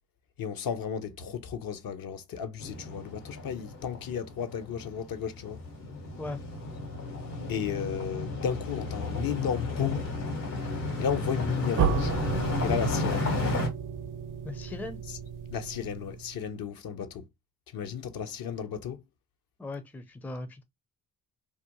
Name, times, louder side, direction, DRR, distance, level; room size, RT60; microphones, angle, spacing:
voice 1, 0.4-5.6 7.5-10.1 11.0-12.1 12.6-13.3 15.5-17.3 17.7-19.0, left 7 dB, 55° left, 0.6 m, -33 dB
sound 1, 2.6-13.7, left 2 dB, 75° left, 1.3 m, -33 dB
sound 2, 11.8-16.6, right 8 dB, 50° right, 0.5 m, -33 dB
voice 2, 14.4-15.0 19.6-20.6, left 2 dB, 5° left, 0.4 m, -38 dB
2.4 x 2.1 x 2.8 m
hypercardioid pair, 45°, 42 cm